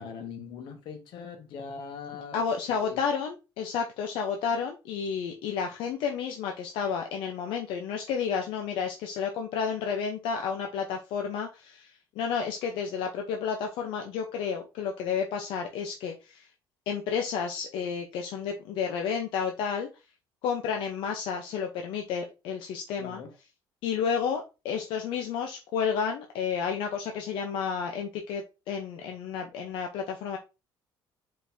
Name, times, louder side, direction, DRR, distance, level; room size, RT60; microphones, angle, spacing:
voice 1, 0.0-3.0 23.0-23.3, left 5 dB, 65° left, 1.2 m, -41 dB
voice 2, 2.3-16.5 16.9-19.9 20.4-23.2 23.8-30.4, left 6 dB, 80° left, 0.7 m, -31 dB
5.1 x 3.9 x 2.7 m
cardioid pair, 150°, 9 cm